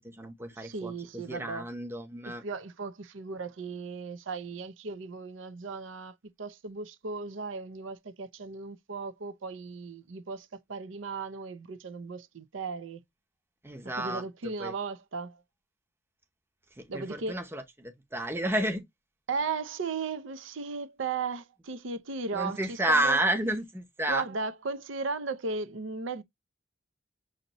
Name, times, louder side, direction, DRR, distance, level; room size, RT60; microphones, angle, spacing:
voice 1, 0.0-2.4 13.6-14.7 16.8-18.8 22.3-24.2, right 1 dB, 10° right, 0.7 m, -31 dB
voice 2, 0.6-1.7 2.4-13.0 14.0-15.4 16.9-17.4 19.3-23.2 24.1-26.2, right 4 dB, 80° right, 0.6 m, -36 dB
6.5 x 2.7 x 2.9 m
head